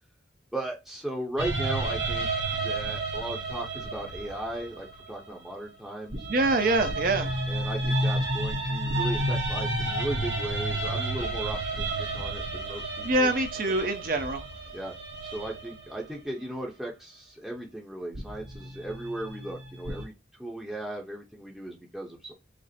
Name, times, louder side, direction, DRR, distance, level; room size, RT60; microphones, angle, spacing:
voice 1, 0.5-2.3 2.6-6.3 7.5-13.3 13.7-13.8 14.7-14.9 15.2-20.1 20.4-22.3, right 1 dB, ahead, 0.7 m, -36 dB
sound 1, 1.4-5.6 6.1-16.2 18.1-20.0, right 2 dB, 80° right, 1.2 m, -31 dB
voice 2, 6.3-7.3 13.0-14.4, right 2 dB, 50° right, 0.7 m, -25 dB
5.1 x 2.0 x 4.2 m
head